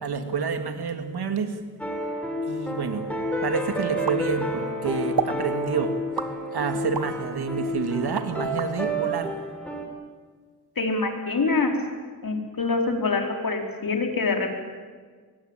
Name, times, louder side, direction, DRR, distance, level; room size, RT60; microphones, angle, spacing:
voice 1, 0.0-1.6 2.5-3.1 3.4-6.0 6.5-9.4, right 5 dB, 85° right, 7 dB, 2.5 m, -28 dB
sound 1, 1.8-9.8, equal, 5° left, 5.2 m, -30 dB
sound 2, 4.1-4.7 5.2-5.4 6.2-7.2 7.6-8.7, right 6 dB, 70° right, 1.6 m, -30 dB
voice 2, 10.8-11.7 12.2-14.5, left 3 dB, 65° left, 3 dB, 4.4 m, -25 dB
24.0 x 20.5 x 9.1 m, 1.5 s
wide cardioid pair, 85°, 37 cm